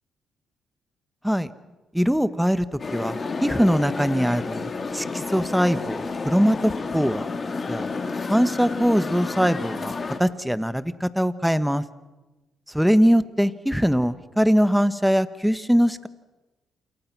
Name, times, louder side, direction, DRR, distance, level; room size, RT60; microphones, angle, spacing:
voice 1, 1.9-7.3 7.7-7.9 8.3-9.9 10.2-11.8 12.7-16.1, equal, ahead, 13 dB, 1.3 m, -22 dB
sound 1, 2.8-10.2, left 4 dB, 35° left, 2.9 m, -30 dB
28.5 x 28.5 x 6.2 m, 1.1 s
cardioid pair, 90°, 0 cm